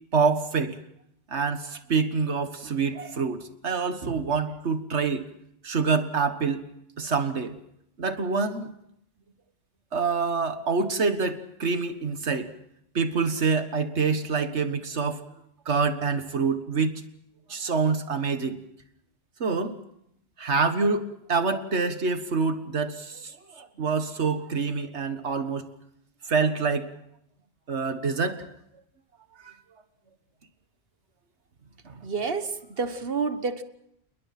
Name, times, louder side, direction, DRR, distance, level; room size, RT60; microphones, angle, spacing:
voice 1, 0.1-0.8 1.3-5.3 5.6-6.6 7.0-7.6 8.0-8.7 9.9-12.5 12.9-15.2 15.7-17.0 17.5-18.6 19.4-19.7 20.4-25.7 26.3-26.9 27.7-28.5 29.4-29.5 31.9-32.0, right 4 dB, 85° right, 1.9 m, -26 dB
voice 2, 32.0-33.6, right 4 dB, 60° right, 1.5 m, -29 dB
29.0 x 21.5 x 6.0 m
omnidirectional pair, 1.1 m